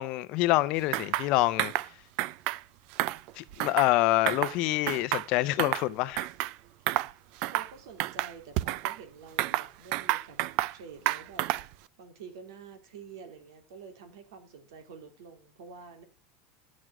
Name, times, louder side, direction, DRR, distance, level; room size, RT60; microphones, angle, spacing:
voice 1, 0.0-1.7 3.4-6.3, left 17 dB, 45° left, 0.6 m, -26 dB
sound 1, 0.9-1.3 1.6-1.9 2.2-2.6 2.9-3.9 4.3-4.6 4.9-5.9 6.2-6.5 6.9-7.1 7.4-7.7 8.0-9.0 9.4-10.8 11.1-11.7, right 17 dB, 45° right, 0.4 m, -30 dB
voice 2, 7.4-10.4 10.7-11.5 12.0-16.0, right 6 dB, 85° right, 2.7 m, -48 dB
11.0 x 6.3 x 6.0 m
supercardioid pair, 170°, 2 cm